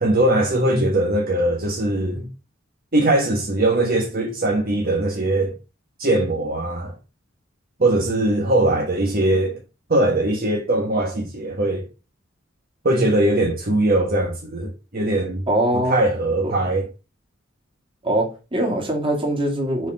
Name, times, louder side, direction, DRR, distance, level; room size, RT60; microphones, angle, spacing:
voice 1, 0.0-2.3 2.9-5.6 6.0-6.9 7.8-9.6 9.9-11.9 12.8-15.4 15.7-16.9, right 1 dB, 45° right, 1.3 m, -21 dB
voice 2, 15.5-16.1 16.4-16.5 18.0-19.9, right 1 dB, 25° right, 2.6 m, -22 dB
6.9 x 4.4 x 5.2 m
head